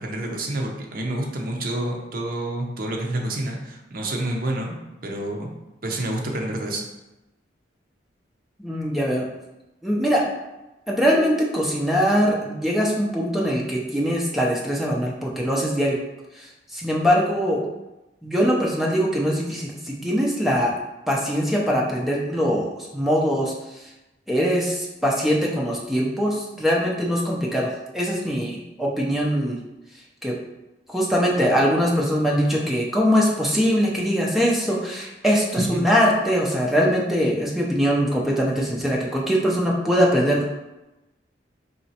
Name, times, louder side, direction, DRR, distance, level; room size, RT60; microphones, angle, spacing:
voice 1, 0.0-4.7 5.0-5.5 5.8-6.8 35.6-35.9, right 1 dB, 50° right, 1 dB, 0.6 m, -28 dB
voice 2, 8.6-9.3 9.8-10.2 10.9-16.0 16.4-16.5 16.7-17.6 18.2-20.7 21.1-23.5 24.3-29.6 30.2-30.4 30.9-40.4, equal, ahead, -3 dB, 0.6 m, -22 dB
4.2 x 2.9 x 2.8 m, 1.0 s
head